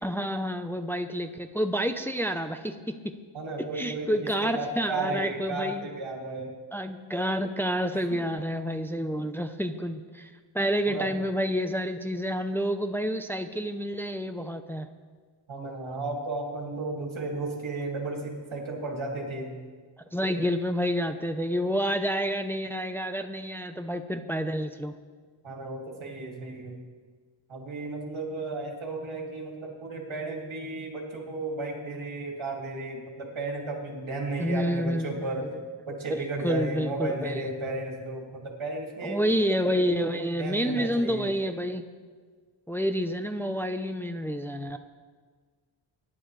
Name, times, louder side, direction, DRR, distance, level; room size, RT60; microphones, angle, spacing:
voice 1, 0.0-3.1 3.7-5.9 6.7-14.9 20.1-24.9 34.4-35.1 36.1-36.2 36.4-37.4 39.0-41.9 42.7-44.8, equal, 5° left, 7 dB, 0.7 m, -29 dB
voice 2, 3.3-6.6 7.9-8.2 10.9-11.1 15.5-19.5 25.4-26.8 27.5-35.5 35.9-39.2 39.7-41.3, right 2 dB, 80° right, 0 dB, 2.7 m, -34 dB
23.0 x 11.0 x 3.3 m, 1.5 s
wide cardioid pair, 90°, 47 cm